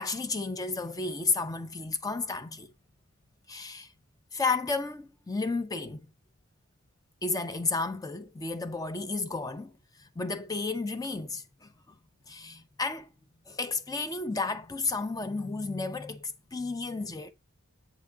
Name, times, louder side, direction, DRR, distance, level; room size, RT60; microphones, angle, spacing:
voice 1, 0.0-2.7 3.5-3.9 4.3-6.1 7.2-9.7 10.0-11.7 12.3-13.1 13.5-17.3, left 3 dB, 15° left, 0.4 m, -32 dB
7.5 x 3.5 x 3.6 m
head